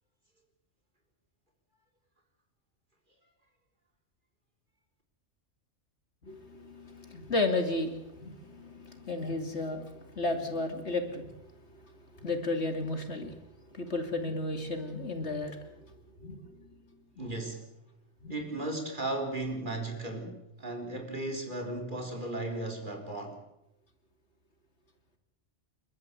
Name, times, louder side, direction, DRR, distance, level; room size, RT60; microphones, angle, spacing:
voice 1, 6.2-11.4 12.2-13.3 13.7-15.9 16.2-16.7 17.2-17.3 18.2-18.4, left 2 dB, 60° left, 6 dB, 3.1 m, -33 dB
voice 2, 17.2-17.7 18.3-23.4, right 2 dB, 40° right, 3 dB, 4.3 m, -36 dB
29.0 x 13.5 x 8.5 m, 0.86 s
omnidirectional pair, 1.3 m